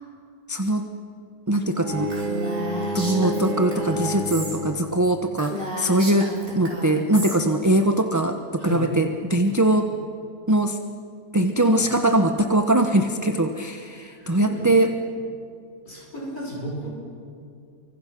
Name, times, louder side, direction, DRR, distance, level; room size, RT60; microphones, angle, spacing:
voice 1, 0.5-0.9 1.5-2.1 2.9-9.9 10.5-10.8 11.3-15.0, right 1 dB, 15° right, 5 dB, 0.7 m, -21 dB
Bowed string instrument, 1.8-5.1, right 1 dB, 85° right, 3.3 m, -29 dB
Female speech woman speaking, 2.1-4.6 4.9-5.0 5.4-7.4, right 1 dB, 35° right, 4.7 m, -33 dB
voice 2, 8.6-8.9 11.7-11.9 14.1-14.7 15.8-16.9, equal, 70° left, -3 dB, 6.5 m, -33 dB
29.5 x 24.5 x 6.2 m, 2.3 s
omnidirectional pair, 1.6 m